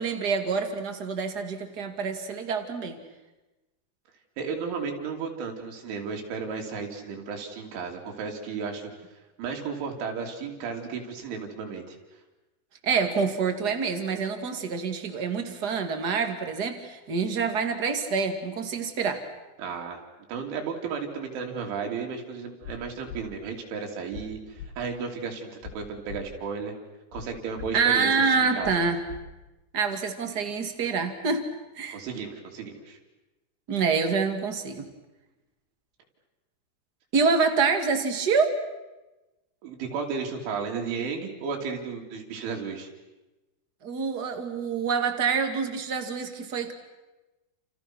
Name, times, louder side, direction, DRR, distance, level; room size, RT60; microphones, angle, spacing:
voice 1, 0.0-3.0 12.8-19.2 27.7-29.0 29.7-31.4 31.7-32.0 33.7-34.9 37.1-38.6 43.8-46.7, right 5 dB, 35° right, 6 dB, 1.6 m, -26 dB
voice 2, 4.4-8.9 9.4-12.0 19.6-20.0 20.3-26.7 27.1-28.8 31.9-33.0 39.6-42.9, right 5 dB, 90° right, 2 dB, 5.6 m, -34 dB
sound 1, 22.6-22.8 23.1-23.2 24.1-24.2 24.6-24.7 25.6-25.7 26.1-26.2 27.1-27.2 27.6-27.7 28.6-28.8 29.1-29.2, left 8 dB, 60° left, 4.1 m, -39 dB
29.5 x 28.5 x 6.3 m, 1.1 s
omnidirectional pair, 5.3 m